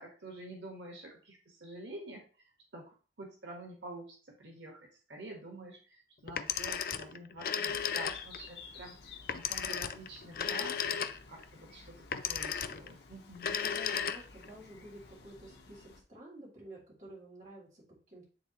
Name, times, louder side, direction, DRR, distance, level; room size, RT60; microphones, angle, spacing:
voice 1, 0.0-2.2 2.7-11.0 11.3-13.6, right 1 dB, 90° right, 1 dB, 1.4 m, -48 dB
Telephone, 6.3-8.5 9.3-11.4 12.1-12.9 13.3-14.5, left 7 dB, 55° left, 0.4 m, -35 dB
sound 1, 7.7-16.0, left 4 dB, 75° left, 1.0 m, -54 dB
voice 2, 13.6-18.3, right 1 dB, 45° right, -4 dB, 2.5 m, -51 dB
9.4 x 3.5 x 3.0 m, 0.38 s
head